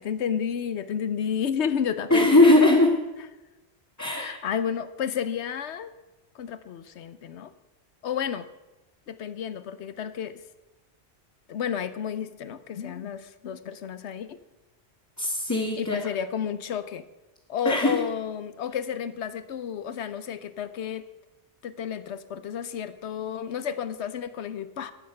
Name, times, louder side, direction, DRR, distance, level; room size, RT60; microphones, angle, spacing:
voice 1, 0.0-2.5 4.1-5.9 6.3-7.5 8.0-8.5 9.1-10.4 11.5-14.4 15.8-17.0 17.5-21.1 21.6-24.9, left 8 dB, 75° left, 13 dB, 1.0 m, -31 dB
voice 2, 2.1-2.9 4.0-4.4 15.2-16.0 17.6-18.0, left 2 dB, 15° left, -2 dB, 1.3 m, -19 dB
12.5 x 8.7 x 5.6 m, 1.0 s
omnidirectional pair, 1.1 m